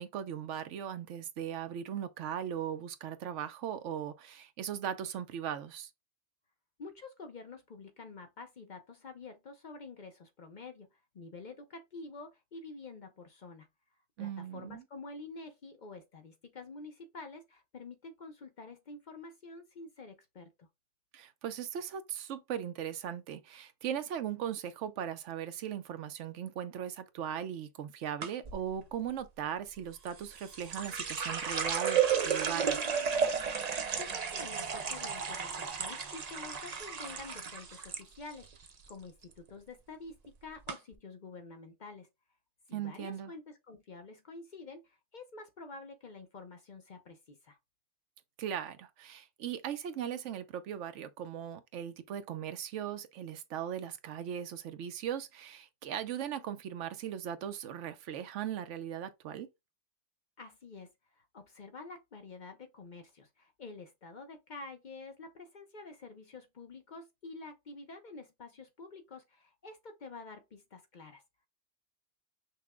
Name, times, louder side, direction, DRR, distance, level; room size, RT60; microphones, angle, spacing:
voice 1, 0.0-5.9 14.2-14.8 21.1-32.8 42.7-43.3 48.4-59.5, right 9 dB, 80° right, 0.9 m, -38 dB
voice 2, 6.8-13.7 14.2-20.7 33.9-42.1 42.7-47.6 60.4-71.2, left 3 dB, 45° left, 0.7 m, -48 dB
sound 1, 28.2-28.6 30.1-38.0 38.3-38.9 39.2-39.6 40.2-40.3 40.7-40.8, right 7 dB, 45° right, 0.6 m, -33 dB
5.8 x 2.1 x 3.5 m
omnidirectional pair, 1.2 m